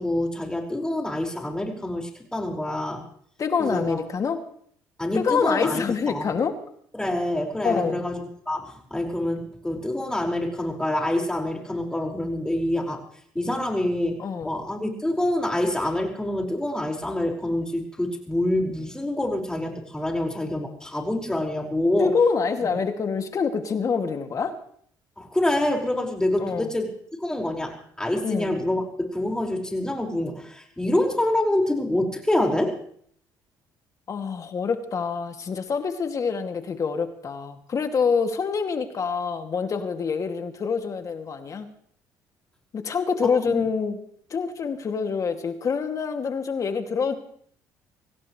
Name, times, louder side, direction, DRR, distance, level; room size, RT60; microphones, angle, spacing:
voice 1, 0.0-3.0 3.6-4.1 5.0-6.3 6.9-13.0 13.4-22.1 22.6-22.7 25.2-26.9 27.2-32.8 43.5-43.6, left 1 dB, 10° left, 1 dB, 5.3 m, -26 dB
voice 2, 3.4-4.5 5.1-6.6 7.6-8.0 14.2-14.5 22.0-24.6 26.4-26.7 28.2-28.5 34.1-41.7 42.7-44.0 44.3-47.1, left 5 dB, 45° left, 6 dB, 2.4 m, -26 dB
25.0 x 17.0 x 3.3 m, 0.62 s
supercardioid pair, 75°, 8 cm